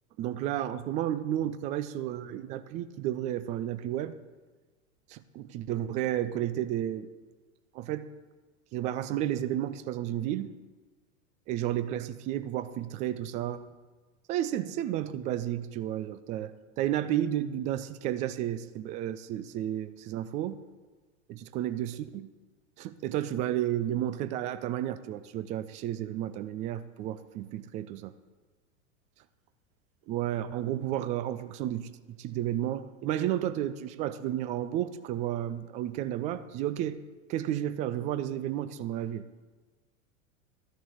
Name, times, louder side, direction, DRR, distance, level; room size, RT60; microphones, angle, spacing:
voice 1, 0.2-4.2 5.1-7.1 7.7-8.1 8.7-10.5 11.5-13.7 14.3-20.6 21.3-22.3 22.8-28.1 30.1-37.0 37.3-39.3, right 12 dB, 20° right, 0.4 m, -32 dB
13.5 x 6.6 x 7.6 m
figure-of-eight pair, 85°, 41 cm